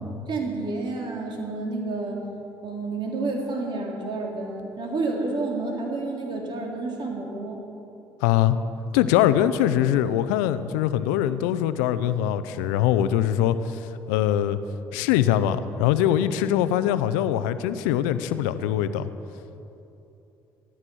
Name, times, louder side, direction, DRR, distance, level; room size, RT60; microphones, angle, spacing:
voice 1, 0.3-2.3 2.6-7.6, right 3 dB, 55° right, 0 dB, 3.4 m, -30 dB
voice 2, 8.2-8.6 8.9-14.6 14.9-19.1, left 11 dB, 90° left, 13 dB, 0.6 m, -22 dB
15.0 x 13.0 x 6.2 m, 2.9 s
supercardioid pair, 70°, 10 cm